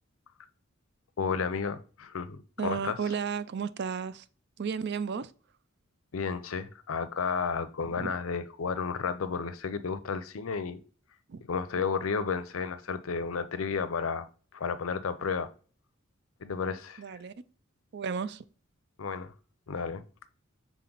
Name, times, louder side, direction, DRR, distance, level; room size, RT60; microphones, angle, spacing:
voice 1, 1.2-3.0 6.1-10.8 11.5-14.3 14.5-15.5 16.4-17.0 19.0-19.3 19.7-20.0, left 5 dB, 90° left, 0.6 m, -32 dB
voice 2, 2.6-4.2 4.6-5.3 8.0-8.1 11.3-11.4 17.0-17.3 17.9-18.4, right 6 dB, 55° right, 0.4 m, -33 dB
5.9 x 4.1 x 3.9 m
head